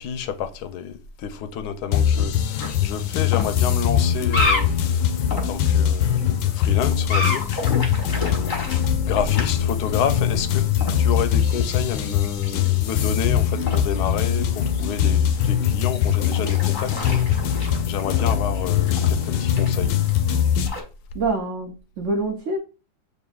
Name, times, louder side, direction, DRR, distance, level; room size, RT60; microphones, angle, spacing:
voice 1, 0.0-7.8 8.0-8.6 8.9-10.7 11.0-19.9, left 7 dB, 70° left, 1.0 m, -29 dB
sound 1, 1.9-20.7, left 9 dB, 90° left, 1.4 m, -22 dB
sound 2, 2.5-20.8, left 2 dB, 35° left, 0.8 m, -32 dB
voice 2, 21.1-22.6, right 2 dB, 70° right, 0.7 m, -26 dB
6.8 x 2.7 x 2.3 m
omnidirectional pair, 2.0 m